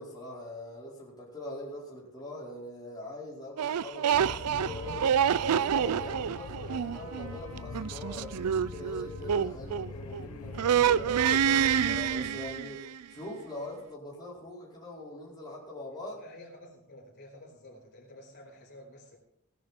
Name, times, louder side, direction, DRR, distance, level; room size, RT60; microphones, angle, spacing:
voice 1, 0.0-5.1 5.4-12.8 13.1-16.2, left 1 dB, 20° left, -6 dB, 4.6 m, -42 dB
sound 1, 3.6-10.2 10.5-13.0, right 8 dB, 90° right, 0.4 m, -27 dB
sound 2, 4.1-12.7, left 4 dB, 70° left, 0.6 m, -43 dB
Trumpet, 4.6-9.6, right 1 dB, 70° right, 5.8 m, -54 dB
voice 2, 16.1-19.2, left 1 dB, 50° left, -1 dB, 4.8 m, -51 dB
18.0 x 10.5 x 4.4 m, 0.74 s
head